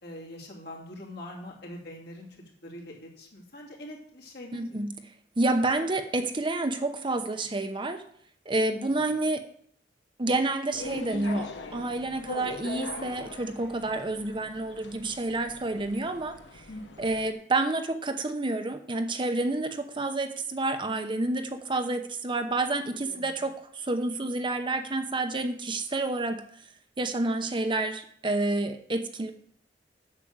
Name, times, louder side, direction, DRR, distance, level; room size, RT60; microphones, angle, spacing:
voice 1, 0.0-2.3 2.6-4.8 8.7-8.8 16.7-17.1 23.1-23.3, left 1 dB, 65° left, -2 dB, 2.8 m, -43 dB
voice 2, 4.5-4.9 5.4-8.0 8.5-9.4 10.2-16.6 17.0-26.4 27.0-29.3, right 2 dB, 30° right, 7 dB, 0.8 m, -29 dB
sound 1, 10.7-17.3, left 3 dB, 85° left, 1.1 m, -41 dB
8.7 x 6.7 x 7.3 m, 0.63 s
head